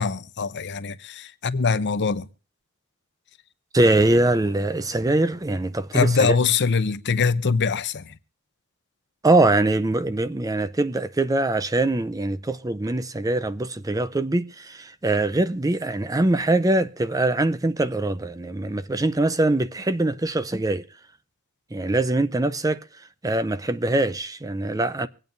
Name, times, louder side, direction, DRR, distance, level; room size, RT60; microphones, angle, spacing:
voice 1, 0.0-2.3 5.9-8.1, left 5 dB, 55° left, 0.8 m, -23 dB
voice 2, 3.7-6.4 9.2-20.8 21.7-22.8 23.2-25.1, right 2 dB, 15° right, 0.5 m, -23 dB
25.0 x 8.9 x 2.6 m
head